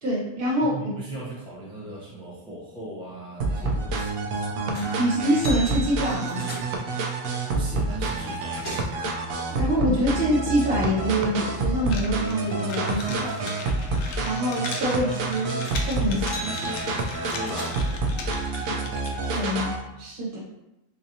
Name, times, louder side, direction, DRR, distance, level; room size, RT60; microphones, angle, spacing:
voice 1, 0.0-0.9 4.5-6.4 9.5-13.3 14.2-16.2 19.2-20.4, equal, 45° right, -6 dB, 1.3 m, -25 dB
voice 2, 0.6-4.5 7.5-8.9 12.9-13.7 14.7-15.3 16.1-18.0, right 3 dB, 5° right, -6 dB, 0.4 m, -38 dB
sound 1, 3.4-19.8, right 3 dB, 85° right, 1.0 m, -28 dB
sound 2, 4.7-5.0 5.3-6.9 7.9-8.0 8.3-9.0 15.6-15.9 16.2-18.0 18.8-19.4, right 1 dB, 20° left, 0.9 m, -38 dB
sound 3, 11.8-19.3, left 3 dB, 80° left, 1.0 m, -38 dB
4.0 x 2.9 x 2.7 m, 0.92 s
omnidirectional pair, 1.4 m